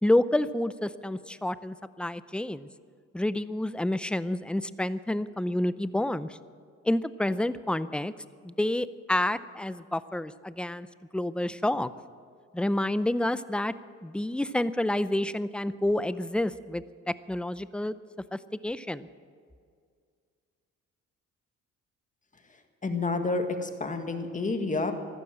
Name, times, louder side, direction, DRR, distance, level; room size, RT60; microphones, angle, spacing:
voice 1, 0.0-2.7 3.1-6.3 6.8-8.1 8.4-10.9 11.1-11.9 12.5-13.7 14.0-18.0 18.3-19.1, left 1 dB, 5° left, 15 dB, 0.6 m, -29 dB
voice 2, 22.8-24.9, left 3 dB, 25° left, 6 dB, 1.9 m, -29 dB
15.5 x 12.5 x 7.5 m, 2.1 s
supercardioid pair, 70°, 31 cm